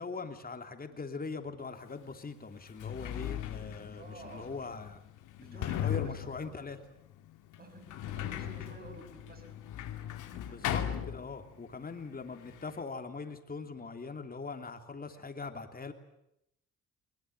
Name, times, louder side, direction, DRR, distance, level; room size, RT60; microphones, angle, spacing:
voice 1, 0.0-5.1 5.4-6.8 10.5-15.9, left 4 dB, 30° left, 6 dB, 3.1 m, -41 dB
Sliding door, 1.9-2.0 2.6-11.7 12.0-12.8, left 11 dB, 85° left, 2.3 m, -38 dB
voice 2, 4.0-4.5 5.4-6.0 6.4-6.5 7.6-9.6 10.3-10.6, right 2 dB, 30° right, 6 dB, 5.8 m, -51 dB
21.0 x 21.0 x 9.4 m, 0.80 s
cardioid pair, 90°, 30 cm